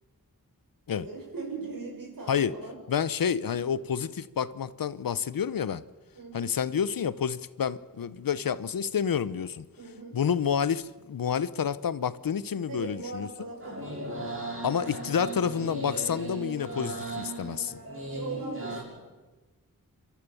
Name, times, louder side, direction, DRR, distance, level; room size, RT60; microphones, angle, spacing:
voice 1, 0.9-2.8 6.1-6.6 9.8-10.2 12.7-14.7 18.1-19.1, right 3 dB, 70° right, 6.6 m, -40 dB
voice 2, 2.9-5.8 6.3-9.6 10.1-13.3 14.6-17.8, left 7 dB, 75° left, 0.8 m, -29 dB
sound 1, 13.6-18.8, right 1 dB, 40° right, 6.9 m, -37 dB
29.0 x 13.5 x 7.0 m
wide cardioid pair, 115°, 35 cm